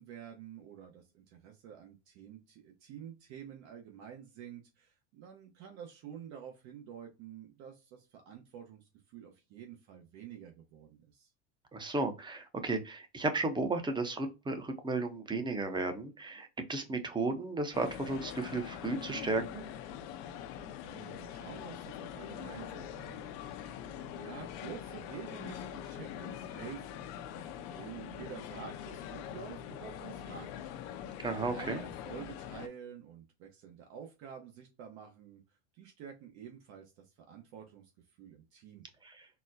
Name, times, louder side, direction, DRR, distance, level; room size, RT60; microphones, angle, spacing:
voice 1, 0.0-11.3 20.8-23.6 24.0-26.9 27.4-30.5 30.8-31.0 31.5-35.4 35.7-37.9 38.2-38.9, right 8 dB, 55° right, 2 dB, 1.0 m, -49 dB
voice 2, 11.7-19.6 31.2-31.8 39.0-39.3, right 3 dB, 15° right, 7 dB, 0.7 m, -34 dB
sound 1, 17.7-32.7, left 9 dB, 60° left, 0.6 m, -43 dB
4.1 x 2.2 x 2.6 m, 0.26 s
supercardioid pair, 110°, 34 cm